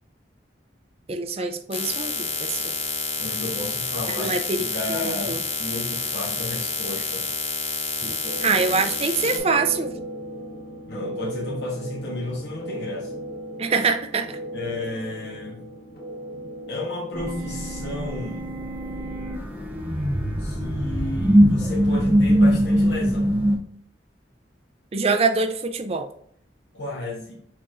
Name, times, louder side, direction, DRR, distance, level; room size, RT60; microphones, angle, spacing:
voice 1, 1.1-2.7 4.2-4.6 4.9-5.4 8.0-9.9 13.6-14.4 24.9-26.1, right 4 dB, 35° right, 7 dB, 0.4 m, -24 dB
sound 1, 1.7-9.4, left 5 dB, 30° left, 0.8 m, -29 dB
voice 2, 3.2-7.3 10.9-13.1 14.5-15.6 16.7-18.5 20.0-23.3 26.7-27.4, left 2 dB, 80° left, -4 dB, 1.1 m, -33 dB
sound 2, 8.2-17.6, right 1 dB, 60° left, 0.9 m, -36 dB
sound 3, 17.1-23.6, equal, 10° right, 0.8 m, -21 dB
6.0 x 3.1 x 2.5 m, 0.64 s
head